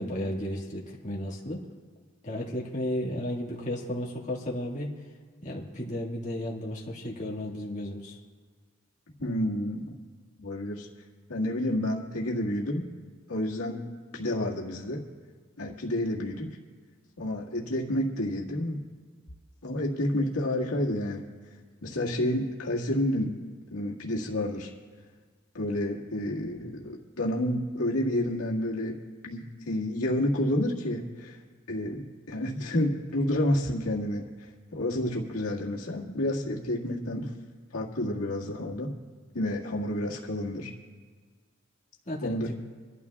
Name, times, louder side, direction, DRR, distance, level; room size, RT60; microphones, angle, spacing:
voice 1, 0.0-1.6 2.2-4.9 5.4-8.2 42.1-42.4, left 1 dB, 30° left, -4 dB, 1.8 m, -33 dB
voice 2, 9.2-9.9 10.4-10.9 11.3-12.9 13.3-13.9 14.1-15.0 15.6-16.5 17.2-18.8 19.6-21.2 21.8-23.4 23.7-24.7 25.5-29.0 29.2-31.4 31.7-34.3 34.7-37.3 37.7-38.9 39.3-40.7 42.2-42.5, left 1 dB, 80° left, -3 dB, 1.9 m, -29 dB
27.0 x 12.5 x 2.4 m, 1.6 s
head